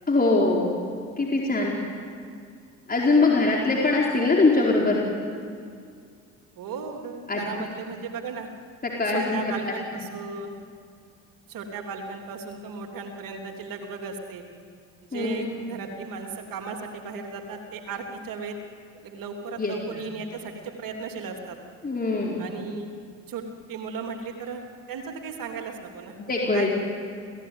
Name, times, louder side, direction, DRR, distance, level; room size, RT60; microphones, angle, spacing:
voice 1, 0.1-0.7 1.2-1.8 2.9-5.0 7.3-7.5 8.8-9.7 15.1-15.8 19.6-20.0 21.8-22.4 26.2-26.8, left 3 dB, 20° left, -2 dB, 4.6 m, -23 dB
voice 2, 6.6-8.5 9.1-10.6 11.5-14.4 15.1-18.6 19.0-21.6 22.4-22.9 23.3-23.4 23.7-24.6 24.9-26.2 26.5-26.8, right 5 dB, 55° right, 4 dB, 3.2 m, -36 dB
28.5 x 17.5 x 9.6 m, 2.3 s
figure-of-eight pair, 55°, 40 cm